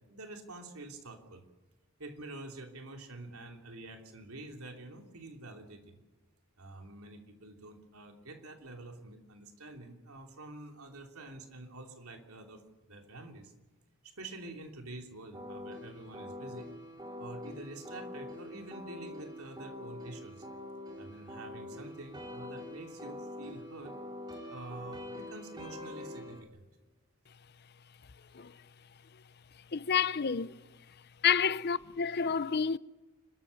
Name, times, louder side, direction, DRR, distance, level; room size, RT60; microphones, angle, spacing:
voice 1, 0.0-1.4 2.0-6.0 6.6-12.6 12.9-13.5 14.0-16.7 17.2-20.4 21.0-24.0 24.5-26.6, right 2 dB, 80° right, 3.2 m, -47 dB
sound 1, 15.3-26.4, left 1 dB, 20° right, 3.6 m, -45 dB
voice 2, 29.7-30.6 31.2-32.8, left 7 dB, 45° left, 0.6 m, -29 dB
30.0 x 13.5 x 7.1 m
head